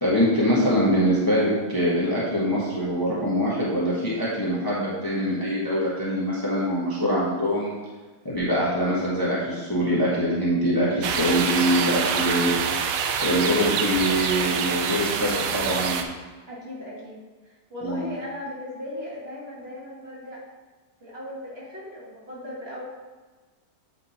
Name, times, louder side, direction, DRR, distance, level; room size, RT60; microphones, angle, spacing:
voice 1, 0.0-7.7 8.2-12.5 13.2-16.0 17.8-18.0, equal, 15° left, -7 dB, 1.2 m, -24 dB
sound 1, 11.0-16.0, right 6 dB, 70° right, 1.0 m, -26 dB
voice 2, 12.1-12.5 16.5-20.4 21.0-22.8, left 1 dB, 40° right, -7 dB, 2.1 m, -37 dB
8.3 x 3.8 x 4.2 m, 1.3 s
omnidirectional pair, 1.6 m